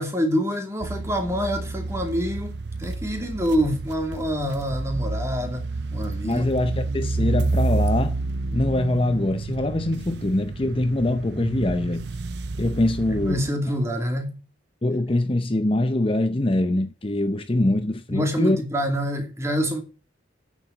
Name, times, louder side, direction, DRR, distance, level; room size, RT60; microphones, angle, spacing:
voice 1, 0.0-5.6 5.9-6.5 13.2-14.3 18.1-19.8, equal, 15° right, 2.6 m, -26 dB
sound 1, 0.8-13.5, right 3 dB, 60° right, 0.6 m, -29 dB
voice 2, 6.2-8.2 8.5-12.1 12.6-13.4 14.8-18.6, left 1 dB, 30° left, 0.7 m, -23 dB
9.6 x 7.2 x 8.0 m
head